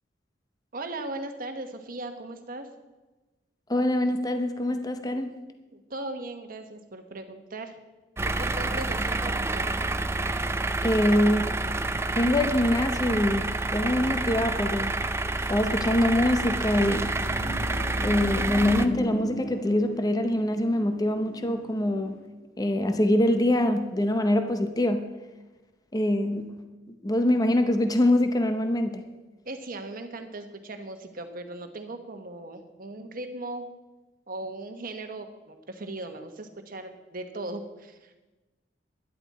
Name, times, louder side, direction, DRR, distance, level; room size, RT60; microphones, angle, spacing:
voice 1, 0.7-2.7 5.7-7.8 8.4-9.7 29.4-33.7 34.3-38.1, right 2 dB, 50° right, 6 dB, 1.2 m, -38 dB
voice 2, 3.7-5.3 10.8-11.5 12.1-13.4 13.7-14.9 15.5-17.1 18.0-22.2 22.6-25.0 25.9-26.5 26.9-29.0, left 1 dB, 20° left, 7 dB, 0.7 m, -24 dB
sound 1, 8.2-18.9, right 2 dB, 15° right, 0.4 m, -28 dB
sound 2, 17.0-22.3, equal, 60° left, 1.3 m, -38 dB
12.0 x 11.0 x 4.2 m, 1.2 s
head